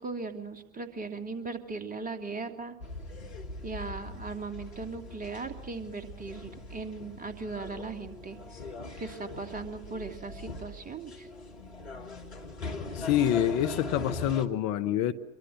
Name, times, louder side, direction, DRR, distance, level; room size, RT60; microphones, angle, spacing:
voice 1, 0.0-2.8 3.6-8.6 9.0-11.3, right 4 dB, 25° right, 3.0 m, -38 dB
sound 1, 2.8-14.5, left 3 dB, 85° left, 1.8 m, -41 dB
voice 2, 12.9-15.1, left 10 dB, 55° left, 1.3 m, -26 dB
26.0 x 23.0 x 6.6 m
figure-of-eight pair, 65°, 32 cm